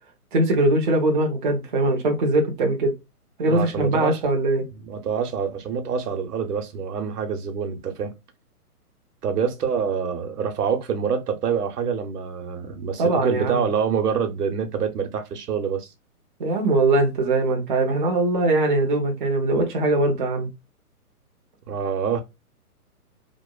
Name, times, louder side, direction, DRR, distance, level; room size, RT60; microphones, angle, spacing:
voice 1, 0.3-2.9 3.4-4.7 13.0-13.6 16.4-20.5, right 2 dB, 35° right, 0.5 m, -21 dB
voice 2, 3.5-4.2 4.8-8.1 9.2-15.9 21.7-22.2, right 6 dB, 80° right, 0.9 m, -26 dB
2.9 x 2.0 x 2.2 m
hypercardioid pair, 155°, 46 cm